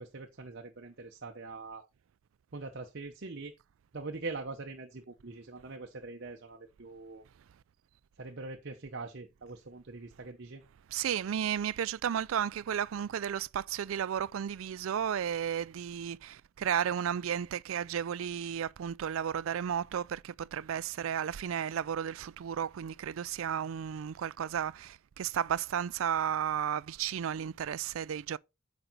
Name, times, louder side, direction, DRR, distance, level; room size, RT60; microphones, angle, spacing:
voice 1, 0.0-1.8 2.5-3.5 3.9-7.2 8.2-10.6, right 3 dB, 55° right, 0.8 m, -43 dB
voice 2, 10.9-28.4, right 9 dB, 75° right, 0.4 m, -33 dB
8.9 x 5.2 x 3.9 m
head